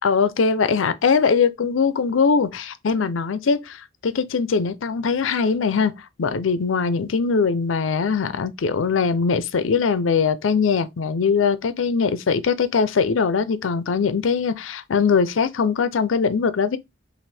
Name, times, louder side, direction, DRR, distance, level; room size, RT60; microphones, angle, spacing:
voice 1, 0.0-5.9 6.2-16.8, left 5 dB, 90° left, 0.5 m, -21 dB
5.9 x 2.5 x 3.3 m
head